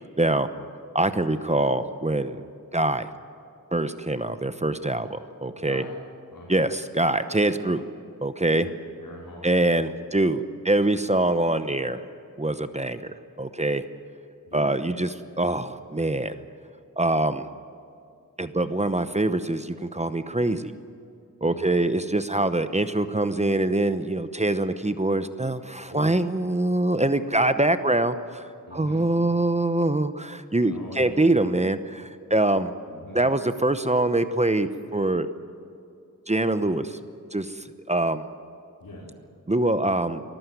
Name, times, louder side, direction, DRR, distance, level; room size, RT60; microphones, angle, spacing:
voice 1, 0.2-0.5 0.9-2.4 2.7-3.1 3.7-5.8 6.5-7.8 8.2-8.7 9.4-12.0 12.4-13.8 14.5-16.4 17.0-17.5 18.4-20.7 21.4-32.7 33.1-35.3 36.3-37.0 37.3-38.2 39.5-40.2, right 2 dB, 20° right, 11 dB, 0.8 m, -24 dB
voice 2, 5.6-6.0 6.3-6.6 8.4-9.8 14.5-14.7 21.4-21.7 25.9-26.1 28.7-29.0 30.7-31.2 32.9-33.2 38.8-39.1, left 2 dB, 80° left, -6 dB, 4.9 m, -42 dB
24.0 x 14.0 x 9.3 m, 2.5 s
wide cardioid pair, 100°, 33 cm